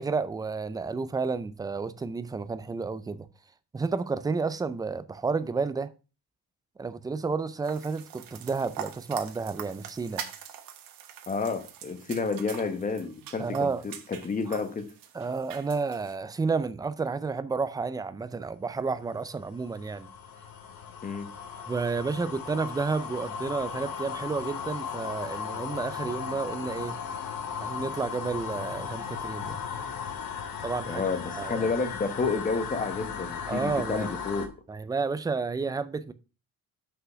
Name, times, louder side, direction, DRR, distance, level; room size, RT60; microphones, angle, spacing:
voice 1, 0.0-3.3 3.7-5.9 6.8-10.3 13.4-13.8 14.5-14.6 15.1-20.1 21.7-27.0 27.6-29.6 30.6-31.0 31.4-31.7 33.5-34.1 34.7-36.1, right 4 dB, 10° right, 0.4 m, -31 dB
sound 1, 7.6-16.1, right 9 dB, 70° right, 1.2 m, -44 dB
voice 2, 11.3-14.9 21.0-21.3 30.9-34.5, left 4 dB, 20° left, 1.1 m, -30 dB
sound 2, 18.9-34.5, left 7 dB, 70° left, 1.4 m, -37 dB
6.1 x 5.8 x 5.5 m
cardioid pair, 160°, 35 cm